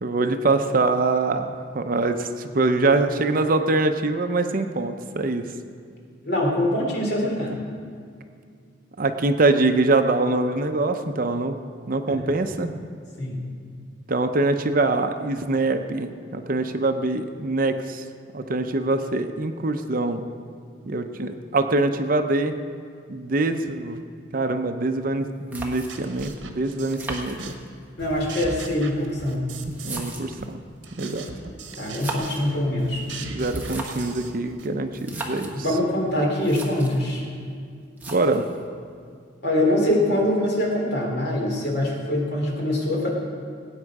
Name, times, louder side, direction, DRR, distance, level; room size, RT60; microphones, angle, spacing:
voice 1, 0.0-5.5 7.5-7.6 9.0-11.6 11.9-12.8 14.1-18.0 18.3-20.3 20.9-22.6 23.1-24.0 24.3-27.5 29.8-30.6 31.0-31.3 33.2-35.6 38.1-38.5, right 2 dB, 45° right, 7 dB, 0.7 m, -24 dB
voice 2, 6.2-7.6 12.1-12.2 13.2-13.5 28.0-29.5 31.8-33.0 35.6-37.2 39.4-43.1, left 1 dB, 60° left, -2 dB, 3.0 m, -23 dB
sound 1, 25.5-26.2 26.9-27.9 28.8-30.5 31.8-32.5 33.4-34.2 34.9-35.6 36.1-36.2 36.4-37.0 38.0-38.6, right 2 dB, 10° right, 1.3 m, -36 dB
sound 2, 25.6-27.7 28.0-30.1 30.4-34.7, right 3 dB, 70° right, 1.3 m, -38 dB
18.5 x 8.9 x 4.8 m, 2.2 s
head